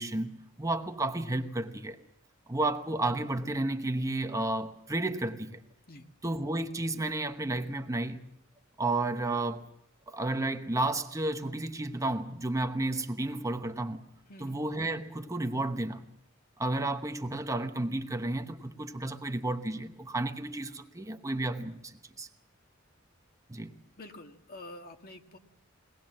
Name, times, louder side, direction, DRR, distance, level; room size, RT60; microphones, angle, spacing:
voice 1, 0.0-2.0 2.5-5.6 6.2-8.2 8.8-9.7 10.1-14.0 14.4-16.0 16.6-22.3 23.5-23.7, right 2 dB, 15° right, 1.0 m, -32 dB
voice 2, 14.3-14.6 24.0-25.4, left 1 dB, 45° left, 1.9 m, -47 dB
23.0 x 18.5 x 7.5 m
head